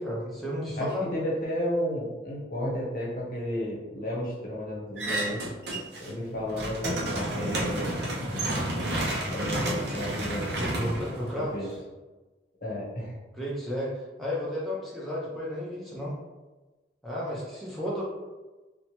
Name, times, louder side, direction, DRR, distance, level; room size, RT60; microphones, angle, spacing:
voice 1, 0.0-1.2 10.6-11.8 13.3-16.1 17.0-18.0, equal, ahead, -7 dB, 0.4 m, -33 dB
voice 2, 0.8-5.4 6.0-8.0 9.3-10.6 11.4-11.7 12.6-13.2, equal, 50° left, -4 dB, 0.7 m, -32 dB
sound 1, 5.0-6.1 6.4-11.8, right 1 dB, 65° right, 0.5 m, -31 dB
2.8 x 2.1 x 2.9 m, 1.2 s
head